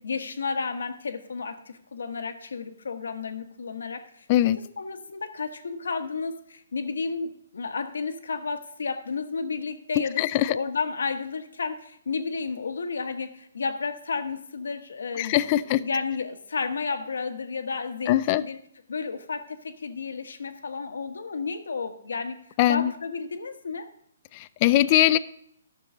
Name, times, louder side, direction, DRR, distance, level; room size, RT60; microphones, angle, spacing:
voice 1, 0.0-4.3 4.8-10.2 10.5-18.6 18.9-22.4 22.7-23.8, left 4 dB, 90° left, 8 dB, 1.3 m, -32 dB
voice 2, 10.2-10.6 15.2-15.8 18.1-18.4 22.6-22.9 24.3-25.2, left 13 dB, 30° left, 15 dB, 0.3 m, -21 dB
12.5 x 6.8 x 3.8 m, 0.72 s
hypercardioid pair, 160°, 0 cm